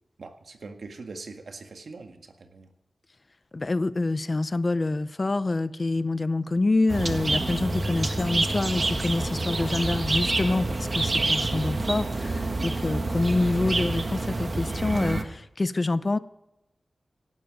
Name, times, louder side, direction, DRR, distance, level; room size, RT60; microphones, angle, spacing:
voice 1, 0.2-2.7, right 3 dB, 70° right, 1.8 m, -42 dB
voice 2, 3.5-16.2, left 2 dB, 35° left, 0.5 m, -26 dB
sound 1, 6.9-15.2, right 2 dB, 40° right, 1.4 m, -27 dB
17.5 x 12.0 x 5.2 m
wide cardioid pair, 90°, 0 cm